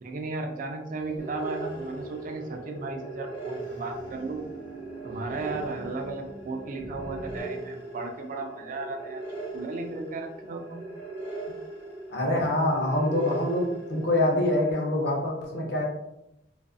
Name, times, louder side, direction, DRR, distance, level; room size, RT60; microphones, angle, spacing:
voice 1, 0.0-4.5 5.0-9.2 9.5-10.8, right 3 dB, 50° right, 4 dB, 0.3 m, -35 dB
sound 1, 0.9-7.4, right 3 dB, 85° left, 1.0 m, -45 dB
sound 2, 1.2-14.7, right 2 dB, 10° left, 0.9 m, -39 dB
voice 2, 12.1-15.8, left 1 dB, 65° left, -1 dB, 0.7 m, -25 dB
2.5 x 2.4 x 2.3 m, 0.87 s
head